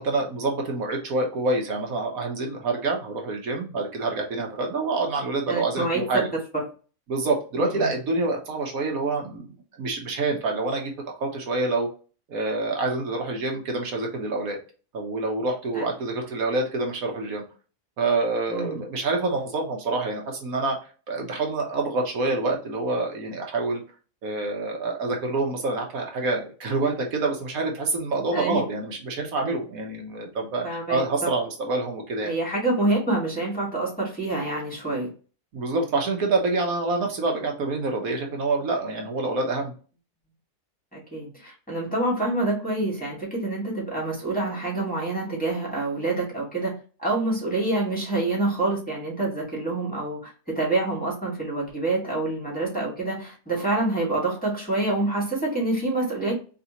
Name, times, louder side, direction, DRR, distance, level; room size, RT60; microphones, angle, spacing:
voice 1, 0.0-6.3 7.1-11.9 12.3-14.6 14.9-17.4 18.0-20.8 21.1-23.8 24.2-32.3 35.5-39.7, right 3 dB, 80° right, 1 dB, 1.5 m, -27 dB
voice 2, 5.5-6.2 7.6-7.9 15.7-15.8 18.5-18.8 28.3-28.6 30.6-31.0 32.3-35.1 40.9-56.3, right 2 dB, 5° left, -4 dB, 1.8 m, -27 dB
4.1 x 3.3 x 2.8 m, 0.36 s
omnidirectional pair, 1.5 m